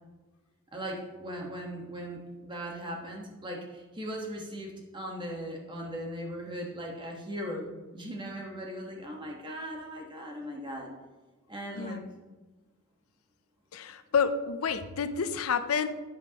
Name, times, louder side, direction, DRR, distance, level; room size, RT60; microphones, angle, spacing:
voice 1, 0.7-10.9 11.5-12.0, equal, 20° right, 0 dB, 1.3 m, -38 dB
voice 2, 13.7-15.9, left 6 dB, 80° left, 11 dB, 0.5 m, -29 dB
8.7 x 7.9 x 2.9 m, 1.2 s
head